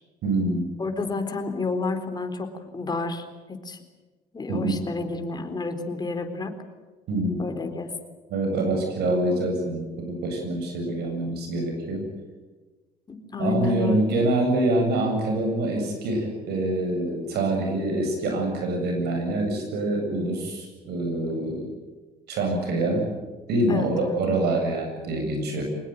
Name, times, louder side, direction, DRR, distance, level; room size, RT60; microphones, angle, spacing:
voice 1, 0.2-0.7 4.5-4.8 7.1-7.4 8.3-12.0 13.4-21.7 22.3-23.1 23.5-25.6, right 2 dB, 75° right, 3 dB, 7.9 m, -25 dB
voice 2, 0.8-3.8 4.3-6.5 7.4-7.9 13.1-14.1 23.7-24.2, left 4 dB, 25° left, 6 dB, 3.9 m, -30 dB
24.0 x 20.5 x 9.3 m, 1.3 s
cardioid pair, 110°, 17 cm